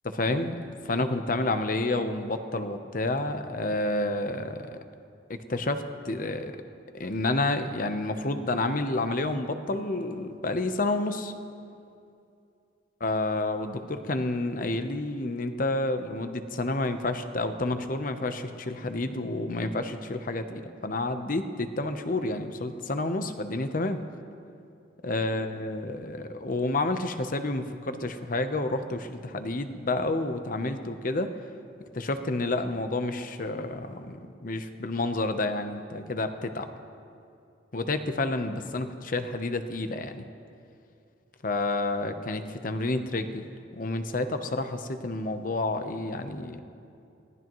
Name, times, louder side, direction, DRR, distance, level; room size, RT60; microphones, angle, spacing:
voice 1, 0.2-4.7 5.3-6.5 6.9-11.3 13.0-24.0 25.0-31.3 31.9-36.7 37.7-40.3 41.4-43.4 43.7-46.6, left 2 dB, 50° left, 8 dB, 0.8 m, -29 dB
24.5 x 18.0 x 3.1 m, 2.5 s
head